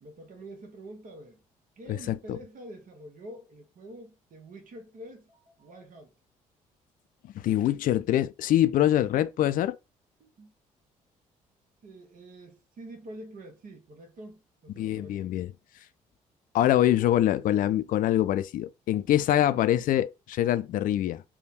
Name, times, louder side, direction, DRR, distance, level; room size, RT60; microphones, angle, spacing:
voice 1, 0.0-1.4 1.8-6.1 10.2-10.5 11.8-15.3, right 1 dB, 50° right, 1.2 m, -46 dB
voice 2, 7.3-9.8 14.8-15.5 16.5-21.2, left 12 dB, 55° left, 0.4 m, -24 dB
3.4 x 2.3 x 4.2 m
hypercardioid pair, 50°, 17 cm